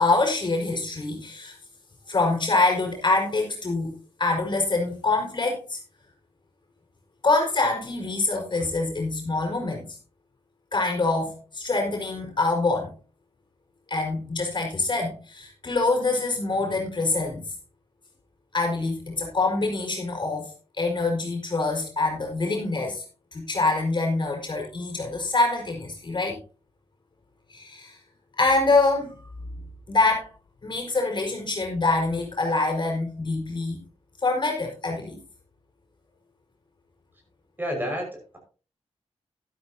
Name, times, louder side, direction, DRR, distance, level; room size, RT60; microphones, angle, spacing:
voice 1, 0.0-1.5 2.1-5.8 7.2-10.0 10.7-12.9 13.9-17.5 18.5-23.0 23.3-26.4 27.5-28.0 28.4-29.2 29.9-30.3 30.6-33.8 34.2-35.2, left 3 dB, 45° left, 1 dB, 5.0 m, -25 dB
voice 2, 37.6-38.4, equal, 15° right, 2 dB, 5.6 m, -30 dB
12.5 x 12.0 x 2.9 m, 0.35 s
cardioid pair, 80°, 11 cm